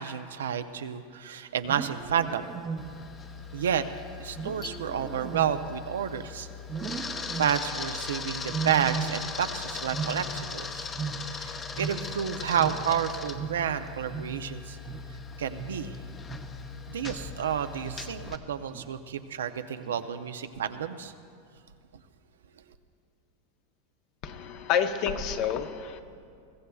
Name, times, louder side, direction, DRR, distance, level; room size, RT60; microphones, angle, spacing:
voice 1, 0.0-2.5 3.5-3.8 4.2-6.5 6.9-7.1 7.4-10.9 11.3-14.8 15.4-16.0 16.9-21.1, right 8 dB, 85° right, 9 dB, 0.6 m, -30 dB
Wild animals, 1.5-3.3 4.3-6.2 6.7-7.9 8.5-9.5 9.8-12.3 12.6-17.5 17.8-18.3 18.7-19.2 19.9-20.3, right 5 dB, 30° right, 0.7 m, -37 dB
Camera, 2.8-18.4, left 5 dB, 25° left, 0.9 m, -39 dB
voice 2, 24.2-26.0, left 8 dB, 55° left, 7 dB, 0.9 m, -29 dB
22.0 x 15.5 x 2.3 m, 2.4 s
hypercardioid pair, 105°, 0 cm